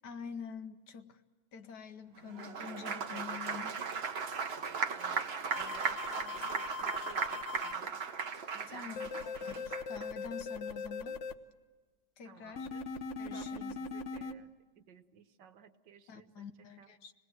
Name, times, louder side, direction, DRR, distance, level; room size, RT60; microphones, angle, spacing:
voice 1, 0.0-1.2 1.5-3.8 8.7-11.2 12.2-12.7 13.2-13.7 16.1-17.1, left 6 dB, 70° left, 8 dB, 1.7 m, -46 dB
Applause, 2.3-10.1, right 5 dB, 40° right, 1.0 m, -37 dB
voice 2, 4.9-8.0 8.5-9.2 12.2-12.8 13.3-16.5 16.8-16.9, right 8 dB, 75° right, 9 dB, 1.7 m, -54 dB
sound 1, 5.5-7.7 9.0-11.3 12.6-14.3, left 4 dB, 50° left, 1.0 m, -40 dB
27.0 x 19.5 x 7.9 m, 1.4 s
omnidirectional pair, 1.9 m